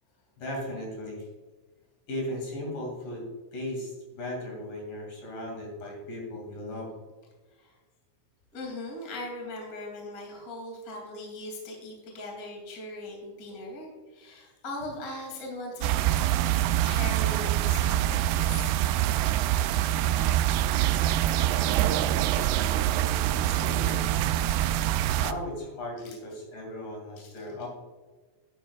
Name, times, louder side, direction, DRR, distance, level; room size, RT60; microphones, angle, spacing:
voice 1, 0.4-1.3 2.1-3.3 3.5-6.9 16.3-16.4 23.4-24.0 25.2-27.7, left 1 dB, 55° left, -1 dB, 3.8 m, -37 dB
voice 2, 8.5-16.2 16.8-18.7 20.7-20.8 26.0-26.2, left 1 dB, 25° left, 0 dB, 2.5 m, -39 dB
sound 1, 15.8-25.3, right 12 dB, 80° right, 2.5 m, -25 dB
11.0 x 11.0 x 2.4 m, 1.3 s
omnidirectional pair, 5.0 m